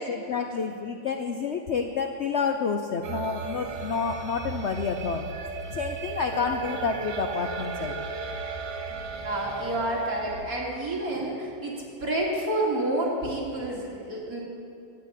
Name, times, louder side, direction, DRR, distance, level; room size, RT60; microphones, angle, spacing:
voice 1, 0.0-5.3 5.7-8.0, left 5 dB, 80° left, 5 dB, 0.6 m, -29 dB
sound 1, 3.0-10.4, right 4 dB, 75° right, 1.7 m, -35 dB
voice 2, 9.2-11.7 12.0-14.4, right 1 dB, 50° right, -4 dB, 3.3 m, -29 dB
12.0 x 9.7 x 8.3 m, 2.5 s
omnidirectional pair, 2.1 m